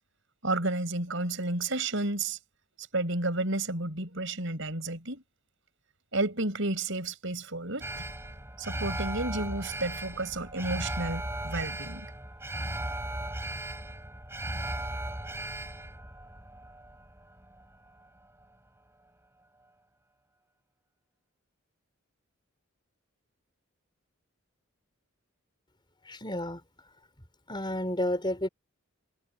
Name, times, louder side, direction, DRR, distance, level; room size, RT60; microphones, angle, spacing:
voice 1, 0.4-2.4 2.9-5.2 6.1-8.0 8.6-12.1, right 2 dB, 60° right, 6.4 m, -31 dB
Alarm, 7.8-18.1 18.4-18.5, right 1 dB, 10° right, 7.6 m, -37 dB
voice 2, 26.1-26.6 27.5-28.5, left 1 dB, 20° left, 4.7 m, -31 dB
head